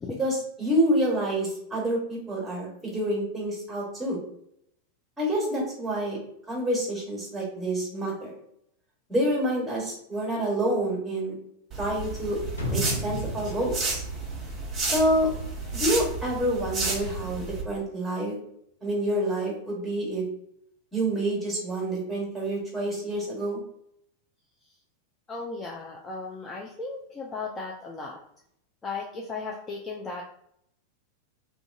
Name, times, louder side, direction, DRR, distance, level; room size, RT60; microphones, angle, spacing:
voice 1, 0.2-4.2 5.2-6.2 6.5-8.3 9.1-11.3 11.8-12.4 12.7-14.0 14.8-15.3 15.7-18.3 18.8-20.2 20.9-23.6, right 1 dB, 5° right, -3 dB, 1.3 m, -27 dB
sound 1, 11.7-17.6, right 3 dB, 25° right, 1.0 m, -32 dB
sound 2, 12.6-15.4 15.7-15.8, left 1 dB, 70° left, 0.6 m, -34 dB
voice 2, 25.3-28.2 28.8-30.2, left 4 dB, 20° left, -2 dB, 0.4 m, -36 dB
2.5 x 2.3 x 2.5 m, 0.72 s
figure-of-eight pair, 90°, 0 cm